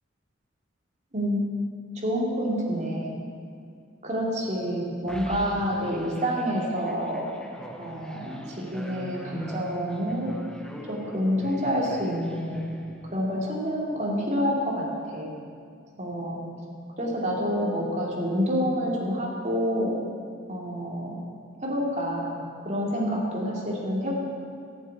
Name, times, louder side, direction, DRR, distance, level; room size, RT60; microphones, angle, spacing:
voice 1, 1.1-1.4 1.9-3.1 4.0-7.3 7.8-10.4 10.9-12.7 13.1-15.3 16.0-16.5 17.0-20.0 20.5-21.2 21.6-22.4 22.6-24.1, equal, 35° right, -2 dB, 2.6 m, -28 dB
sound 1, 5.1-13.4, equal, 5° left, 1.1 m, -43 dB
13.5 x 7.5 x 9.2 m, 2.3 s
head